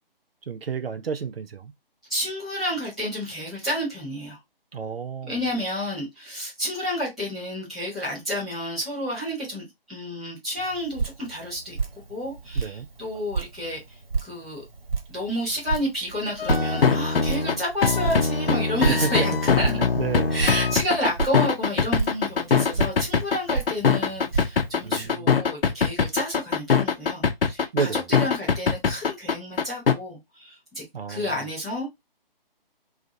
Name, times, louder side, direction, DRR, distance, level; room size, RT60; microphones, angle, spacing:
voice 1, 0.5-1.7 4.7-5.4 12.6-12.9 18.8-19.3 19.8-20.4 24.8-25.4 27.7-28.1 30.9-31.4, right 6 dB, 85° right, 0.6 m, -30 dB
voice 2, 2.1-4.4 5.3-11.8 12.1-13.8 14.2-14.6 15.1-19.8 20.3-31.9, equal, ahead, 0.5 m, -30 dB
Drip, 10.6-25.1, right 5 dB, 55° right, 1.2 m, -33 dB
sound 1, 16.4-29.9, left 5 dB, 75° left, 0.7 m, -22 dB
2.6 x 2.5 x 3.9 m
figure-of-eight pair, 150°, 29 cm